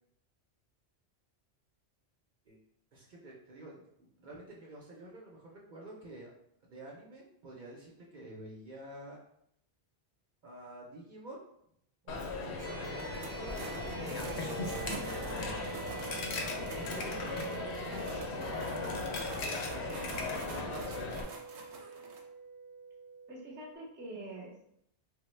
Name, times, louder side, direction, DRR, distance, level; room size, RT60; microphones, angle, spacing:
voice 1, 2.9-6.3 6.6-9.2 10.4-11.4 12.0-13.6 14.1-15.8 16.7-17.5 17.7-21.2, right 1 dB, 55° right, -3 dB, 0.7 m, -48 dB
Coin (dropping), 12.1-21.2, left 3 dB, 80° left, 0.8 m, -37 dB
sound 1, 12.6-23.7, right 4 dB, 10° left, 0.9 m, -46 dB
sound 2, 13.0-22.2, right 3 dB, 90° right, 0.9 m, -47 dB
voice 2, 23.3-24.6, right 1 dB, 15° right, -2 dB, 0.5 m, -45 dB
3.3 x 2.1 x 3.1 m, 0.73 s
omnidirectional pair, 1.1 m